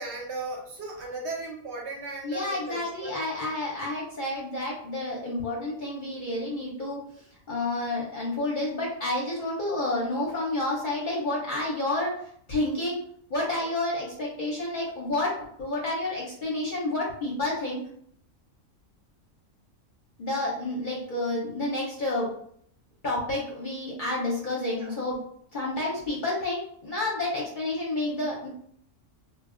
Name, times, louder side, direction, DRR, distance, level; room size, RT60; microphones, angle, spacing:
voice 1, 0.0-3.2 24.7-24.9, right 3 dB, 65° right, -1 dB, 0.8 m, -36 dB
voice 2, 2.2-12.2 12.5-13.0 13.3-17.8 20.2-22.3 23.0-25.2 25.5-28.5, left 2 dB, 50° left, -4 dB, 0.7 m, -30 dB
2.2 x 2.1 x 3.6 m, 0.66 s
omnidirectional pair, 1.4 m